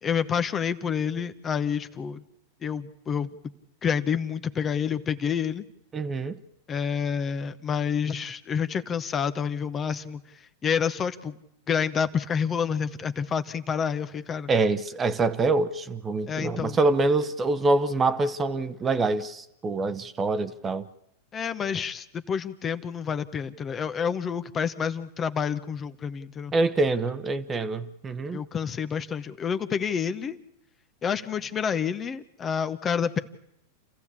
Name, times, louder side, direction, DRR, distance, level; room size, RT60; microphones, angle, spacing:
voice 1, 0.0-2.2 2.6-3.3 3.8-5.6 6.7-10.2 10.6-11.4 11.7-14.5 16.3-16.8 21.3-26.5 28.3-30.4 31.0-33.2, left 7 dB, 25° left, 1.0 m, -28 dB
voice 2, 5.9-6.4 14.5-20.9 26.5-28.4, right 3 dB, 20° right, 1.1 m, -25 dB
28.0 x 14.5 x 8.5 m
hypercardioid pair, 110°, 0 cm